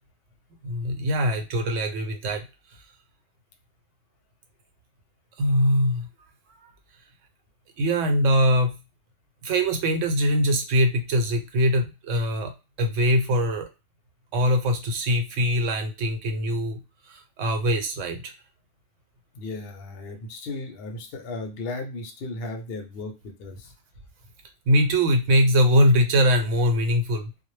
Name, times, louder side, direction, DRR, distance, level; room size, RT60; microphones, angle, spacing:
voice 1, 0.6-2.4 5.4-6.1 7.8-8.8 9.4-13.7 14.3-16.8 17.1-18.3 24.7-27.3, equal, 90° right, 5 dB, 1.0 m, -22 dB
voice 2, 19.3-23.7, left 2 dB, 60° left, 4 dB, 0.7 m, -35 dB
2.1 x 2.0 x 3.1 m, 0.28 s
omnidirectional pair, 1.3 m